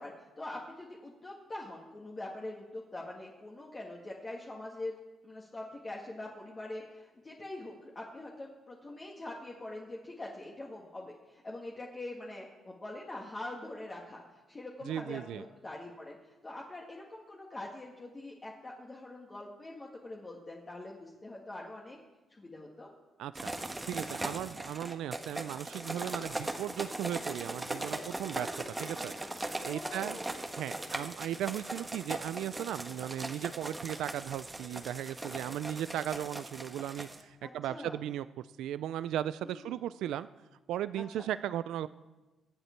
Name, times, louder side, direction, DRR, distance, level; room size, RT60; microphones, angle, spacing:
voice 1, 0.0-5.0 5.2-14.2 14.5-22.0 22.3-22.9 29.6-30.3 37.4-38.0 39.4-39.7 40.9-41.2, left 2 dB, 25° left, -3 dB, 1.9 m, -44 dB
voice 2, 14.9-15.4 23.2-23.5 23.9-28.5 28.8-29.1 29.6-30.2 30.6-38.3 38.6-40.3 40.7-41.9, right 11 dB, 85° right, 15 dB, 0.3 m, -36 dB
sound 1, 23.3-37.2, right 2 dB, 15° right, 1.3 m, -39 dB
22.5 x 8.0 x 4.5 m, 1.1 s
cardioid pair, 90°, 0 cm